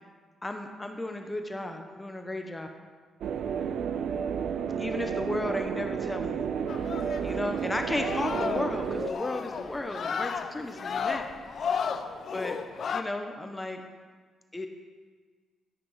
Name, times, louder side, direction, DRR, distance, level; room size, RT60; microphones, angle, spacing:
voice 1, 0.4-2.7 4.8-6.5 7.2-11.2 12.3-12.6 12.9-13.8 14.5-14.7, left 1 dB, 15° left, 4 dB, 1.2 m, -34 dB
sound 1, 3.2-9.1, right 7 dB, 70° right, 0.7 m, -31 dB
sound 2, 6.7-13.0, left 6 dB, 55° left, 0.8 m, -34 dB
13.0 x 10.0 x 5.9 m, 1.5 s
cardioid pair, 90°, 0 cm